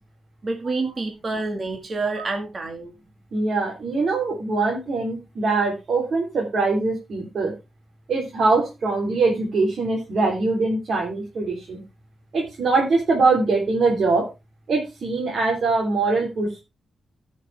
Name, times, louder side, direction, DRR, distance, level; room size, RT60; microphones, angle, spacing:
voice 1, 0.4-2.9, right 3 dB, 35° right, 2.0 m, -28 dB
voice 2, 3.3-7.5 8.1-11.8 12.3-14.3 14.7-16.6, right 3 dB, 60° right, 3.5 m, -22 dB
16.5 x 6.5 x 3.5 m
wide cardioid pair, 135°, 0 cm